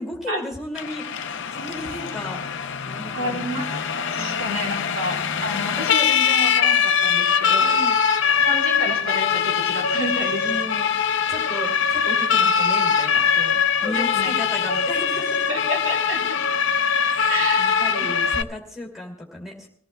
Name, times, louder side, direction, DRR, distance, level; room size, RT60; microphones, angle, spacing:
voice 1, 0.0-3.5 4.1-4.6 7.6-8.0 10.4-10.9 11.3-15.5 17.1-19.7, left 1 dB, ahead, -1 dB, 2.4 m, -35 dB
Siren, 0.7-18.4, left 7 dB, 55° left, 0.5 m, -22 dB
voice 2, 3.1-7.7 8.4-10.5 13.8-14.3 15.5-16.4 17.3-17.6, equal, 80° right, 0 dB, 3.7 m, -30 dB
25.0 x 16.5 x 2.2 m, 0.62 s
head